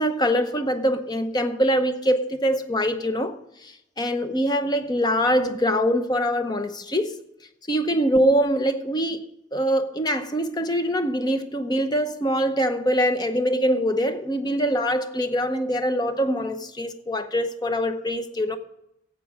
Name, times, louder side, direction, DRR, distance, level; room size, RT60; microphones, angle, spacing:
voice 1, 0.0-3.3 3.6-7.2 7.7-9.3 9.5-18.6, equal, 20° left, 0.7 m, -23 dB
12.0 x 8.2 x 4.7 m
head